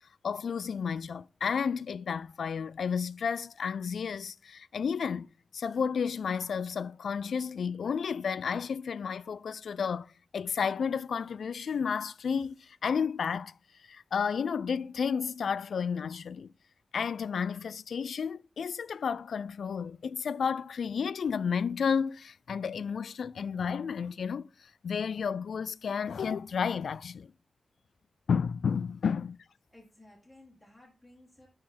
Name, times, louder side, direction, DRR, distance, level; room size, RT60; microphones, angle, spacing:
voice 1, 0.2-13.5 13.9-16.5 16.9-24.5 24.8-27.3 28.3-29.4, left 6 dB, 80° left, 0.3 m, -32 dB
voice 2, 29.7-31.5, left 1 dB, 5° left, 1.7 m, -56 dB
11.5 x 3.9 x 4.3 m
wide cardioid pair, 170°, 0 cm